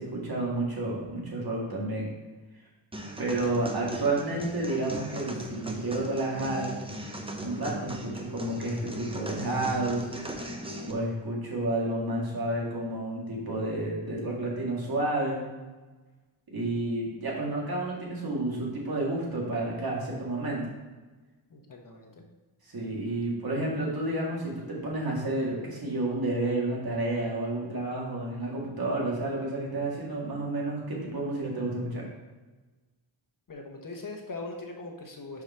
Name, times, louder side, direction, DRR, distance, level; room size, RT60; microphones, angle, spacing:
voice 1, 0.0-2.1 3.2-6.7 7.4-10.1 10.8-15.4 16.5-20.6 22.7-32.1, right 2 dB, 50° right, -3 dB, 2.0 m, -30 dB
sound 1, 2.9-10.9, right 1 dB, 10° right, 0.7 m, -38 dB
voice 2, 21.5-22.2 33.5-35.4, left 3 dB, 45° left, 2 dB, 1.1 m, -41 dB
5.4 x 4.9 x 4.3 m, 1.2 s
wide cardioid pair, 100°, 48 cm